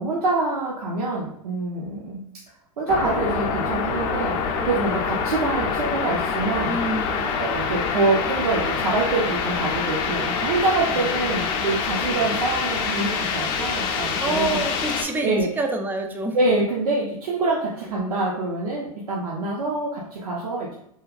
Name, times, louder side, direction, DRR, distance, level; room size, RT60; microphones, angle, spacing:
voice 1, 0.0-2.2 2.8-4.4 4.6-6.8 7.4-14.6 15.2-15.5 16.3-20.7, right 3 dB, 80° right, -4 dB, 0.6 m, -25 dB
sound 1, 2.9-15.0, left 5 dB, 45° left, 0.5 m, -26 dB
voice 2, 6.6-7.4 10.9-11.4 14.2-16.4, right 2 dB, 10° right, 4 dB, 0.4 m, -28 dB
3.1 x 2.2 x 2.4 m, 0.75 s
hypercardioid pair, 100°, 19 cm